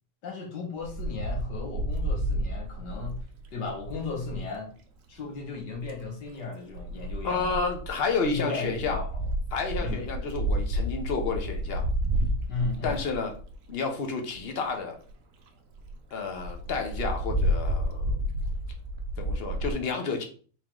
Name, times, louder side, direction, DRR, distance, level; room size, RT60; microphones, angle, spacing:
voice 1, 0.2-3.2 3.5-4.7 5.1-7.5 8.3-9.1 9.8-10.0 12.5-13.0, left 4 dB, 85° left, 0 dB, 1.9 m, -35 dB
Wind, 0.8-4.5 5.6-6.0 6.7-13.7 14.3-14.4 14.6-14.7 15.1-15.2 15.5-15.6 15.8-15.9 16.4-19.7, right 1 dB, 60° right, 1.0 m, -30 dB
voice 2, 7.2-9.0 9.5-11.9 12.8-13.3 13.7-15.0 16.1-18.3 19.2-20.2, left 4 dB, 50° left, 4 dB, 0.8 m, -30 dB
4.5 x 3.0 x 3.6 m, 0.42 s
omnidirectional pair, 1.8 m